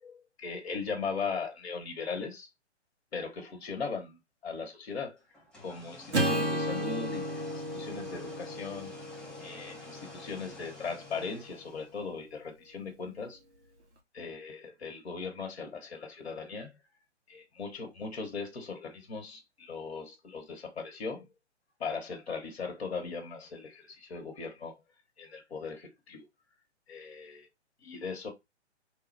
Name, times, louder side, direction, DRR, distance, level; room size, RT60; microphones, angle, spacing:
voice 1, 0.0-2.5 3.1-4.2 4.4-5.2 5.6-7.2 7.5-8.9 9.4-13.4 14.1-16.7 17.3-21.3 21.8-24.7 25.2-26.3 26.9-27.5 27.8-28.3, left 5 dB, 60° left, 1.2 m, -38 dB
sound 1, 5.3-12.1, left 2 dB, ahead, 0.7 m, -49 dB
Acoustic guitar / Strum, 6.1-10.5, right 1 dB, 70° right, 1.6 m, -33 dB
3.4 x 2.3 x 3.2 m
figure-of-eight pair, 130°, 35 cm